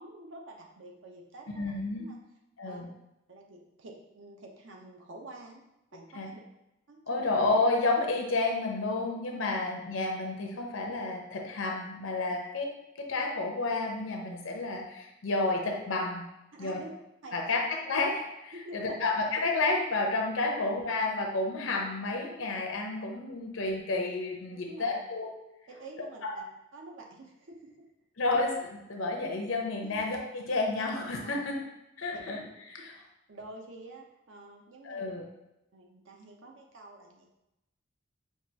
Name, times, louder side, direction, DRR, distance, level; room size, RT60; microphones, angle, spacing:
voice 1, 0.0-1.7 2.0-2.2 2.6-2.8 3.3-5.6 5.9-6.4 6.9-7.3 16.5-16.9 17.2-17.5 18.5-19.1 20.5-20.7 24.5-25.0 25.7-26.4 26.7-27.9 29.8-30.0 31.2-31.4 32.1-32.3 33.3-35.1 35.7-37.3, right 2 dB, 65° right, 1 dB, 0.7 m, -48 dB
voice 2, 1.5-2.0 2.6-2.9 6.1-6.3 7.1-12.7 13.0-16.2 16.6-16.8 17.3-25.3 26.2-26.3 28.2-31.6 32.0-32.4 32.7-32.9 34.8-35.2, left 3 dB, 80° left, 1 dB, 0.7 m, -30 dB
5.8 x 2.4 x 2.7 m, 0.90 s
head